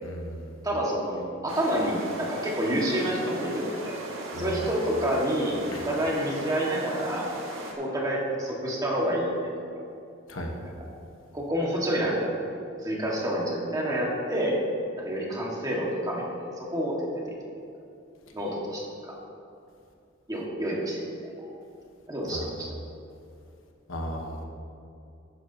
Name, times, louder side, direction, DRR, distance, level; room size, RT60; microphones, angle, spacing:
voice 1, 0.0-0.5 4.3-4.6 5.7-5.8 10.3-10.5 22.3-22.5 23.9-24.4, equal, 75° left, 2 dB, 1.3 m, -35 dB
voice 2, 0.6-4.0 4.3-7.3 7.8-9.5 11.3-12.4 12.8-14.6 15.0-17.2 18.3-19.1 20.3-21.3 22.1-22.7, equal, 20° right, -4 dB, 1.8 m, -28 dB
sound 1, 1.5-7.7, right 2 dB, 90° right, 1.7 m, -38 dB
12.0 x 10.0 x 2.9 m, 2.6 s
head